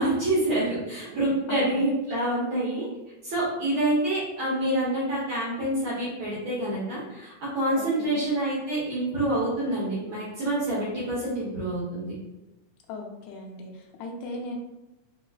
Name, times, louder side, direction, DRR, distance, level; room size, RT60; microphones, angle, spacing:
voice 1, 0.0-2.9 3.2-12.1, right 1 dB, 75° right, -8 dB, 1.2 m, -27 dB
voice 2, 1.5-1.8 7.8-8.2 12.9-14.6, left 2 dB, 80° left, 0 dB, 1.6 m, -38 dB
4.8 x 2.4 x 2.3 m, 0.99 s
omnidirectional pair, 3.6 m